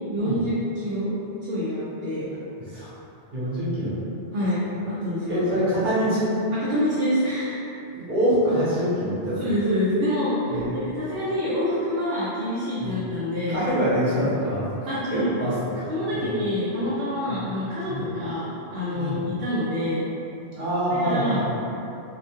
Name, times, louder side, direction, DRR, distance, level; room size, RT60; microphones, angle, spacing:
voice 1, 0.1-1.1 1.4-2.3 4.3-5.4 6.5-7.6 9.4-13.6 14.9-15.3 15.9-20.0 21.0-21.6, equal, 65° right, -11 dB, 0.8 m, -26 dB
voice 2, 3.3-4.0 5.3-6.3 7.9-9.5 10.5-10.8 12.8-13.0 13.5-14.7 15.1-16.4 17.3-17.5 17.9-18.1 18.9-19.2 20.6-21.6, equal, 50° right, -11 dB, 1.2 m, -25 dB
2.8 x 2.1 x 2.9 m, 2.7 s
omnidirectional pair, 1.2 m